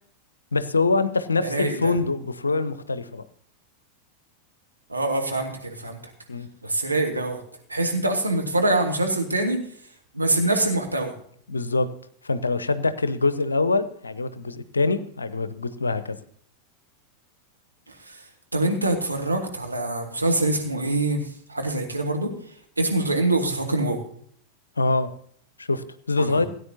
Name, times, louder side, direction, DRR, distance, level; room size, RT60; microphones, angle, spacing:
voice 1, 0.5-3.2 6.3-6.5 11.5-11.9 12.2-16.2 24.8-25.1 25.6-26.5, left 3 dB, 75° left, 14 dB, 0.7 m, -24 dB
voice 2, 1.4-1.9 4.9-6.0 6.6-7.4 7.7-9.6 10.1-11.2 17.9-18.2 18.5-22.3 22.8-24.0 26.2-26.5, right 2 dB, 85° right, 2 dB, 1.8 m, -24 dB
17.0 x 9.3 x 2.8 m, 0.62 s
figure-of-eight pair, 90°, 0 cm